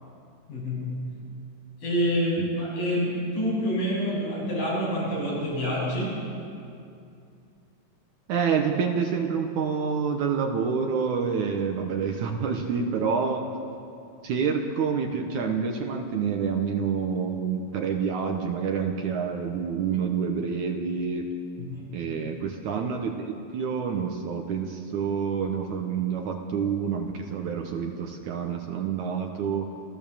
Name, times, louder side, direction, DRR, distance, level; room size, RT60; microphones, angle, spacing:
voice 1, 0.5-0.9 1.8-6.1 21.6-21.9, equal, 80° left, -6 dB, 9.9 m, -27 dB
voice 2, 8.3-13.5 14.2-21.3 21.9-29.7, right 6 dB, 70° right, 3 dB, 2.4 m, -28 dB
29.0 x 15.0 x 7.3 m, 2.5 s
omnidirectional pair, 4.0 m